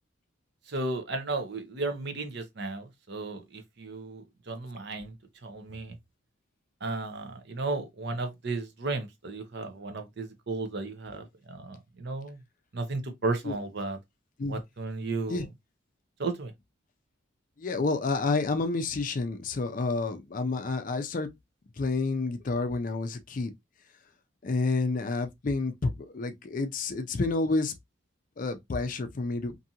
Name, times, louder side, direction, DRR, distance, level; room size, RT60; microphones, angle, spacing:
voice 1, 0.7-5.1 5.4-6.0 6.8-12.4 12.7-14.0 14.5-15.5 16.2-16.5, right 3 dB, 55° right, 0.6 m, -34 dB
voice 2, 17.6-21.3 21.8-23.5 24.4-27.7 28.4-29.6, left 3 dB, 40° left, 0.4 m, -29 dB
2.6 x 2.4 x 2.7 m
head